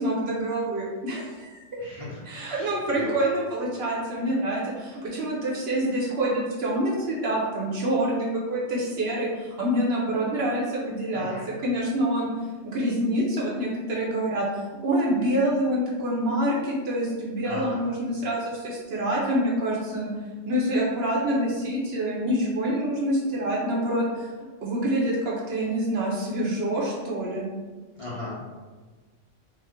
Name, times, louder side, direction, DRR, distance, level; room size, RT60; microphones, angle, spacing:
voice 1, 0.0-1.8 2.2-12.3 12.6-14.5 14.8-20.1 20.5-24.3 24.6-27.5, right 1 dB, 60° right, -4 dB, 0.8 m, -26 dB
voice 2, 1.8-2.2 2.5-3.1 11.1-11.4 17.4-17.8 28.0-28.4, left 2 dB, 35° left, -9 dB, 0.6 m, -36 dB
3.0 x 2.0 x 3.5 m, 1.3 s
omnidirectional pair, 1.3 m